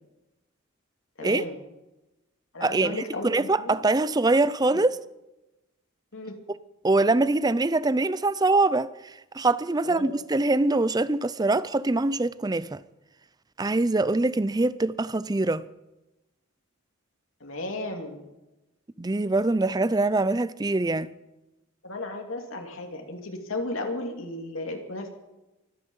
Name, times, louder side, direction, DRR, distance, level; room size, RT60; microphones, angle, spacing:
voice 1, 1.2-1.6 2.5-3.8 6.1-6.4 9.8-10.1 17.4-18.2 21.8-25.1, left 2 dB, 70° left, 2.6 m, -34 dB
voice 2, 2.6-5.0 6.8-12.8 13.6-15.7 19.0-21.1, right 2 dB, 20° right, 0.5 m, -24 dB
24.5 x 10.0 x 5.5 m
head